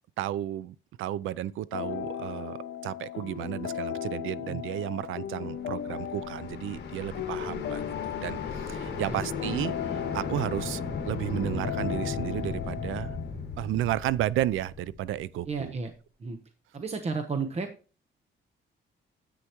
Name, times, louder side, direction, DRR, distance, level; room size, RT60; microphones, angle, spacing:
voice 1, 0.2-7.8 8.2-13.2 13.6-15.8, right 13 dB, 85° right, 0.5 m, -33 dB
sound 1, 1.7-13.3, left 9 dB, 75° left, 0.8 m, -37 dB
sound 2, 5.6-15.6, left 5 dB, 55° left, 1.7 m, -36 dB
voice 2, 15.5-15.9 16.2-16.4 16.7-17.7, right 4 dB, 30° right, 1.0 m, -32 dB
9.8 x 8.2 x 3.0 m
cardioid pair, 135°, 20 cm